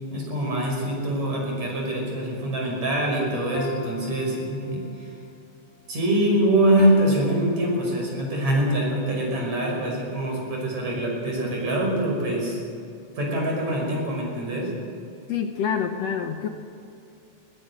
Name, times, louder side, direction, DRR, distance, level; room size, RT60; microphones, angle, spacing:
voice 1, 0.1-4.8 5.9-12.6 13.2-14.7, right 1 dB, 60° right, -1 dB, 6.8 m, -24 dB
sound 1, 3.5-5.1 6.8-8.3, left 5 dB, 85° left, 2.5 m, -38 dB
voice 2, 15.3-16.5, left 7 dB, 65° left, 5 dB, 1.9 m, -26 dB
21.5 x 17.5 x 7.7 m, 2.6 s
omnidirectional pair, 3.6 m